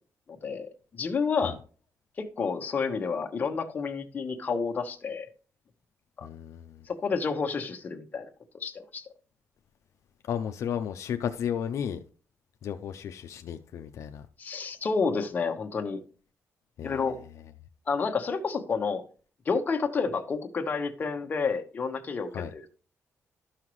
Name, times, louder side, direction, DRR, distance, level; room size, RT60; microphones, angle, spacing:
voice 1, 0.4-1.6 2.2-5.3 6.2-6.3 6.9-8.3 8.6-9.1 14.4-16.0 16.8-17.2 17.9-19.0 19.4-22.7, left 5 dB, 35° left, 1.1 m, -30 dB
voice 2, 6.2-6.8 10.3-12.0 12.6-14.3 16.8-17.1 22.3-22.5, left 8 dB, 75° left, 0.5 m, -33 dB
13.0 x 5.7 x 3.1 m
wide cardioid pair, 175°, 5 cm